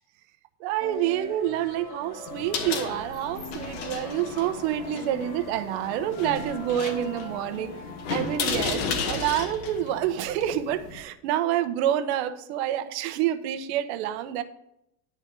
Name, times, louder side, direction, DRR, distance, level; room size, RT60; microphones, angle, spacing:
voice 1, 0.6-7.7 8.1-14.4, right 11 dB, 75° right, 10 dB, 1.0 m, -28 dB
sound 1, 0.8-8.4, left 2 dB, 25° left, 1.8 m, -42 dB
sound 2, 2.3-11.0, left 5 dB, 80° left, 1.8 m, -34 dB
10.5 x 4.4 x 7.6 m, 0.80 s
supercardioid pair, 140°, 33 cm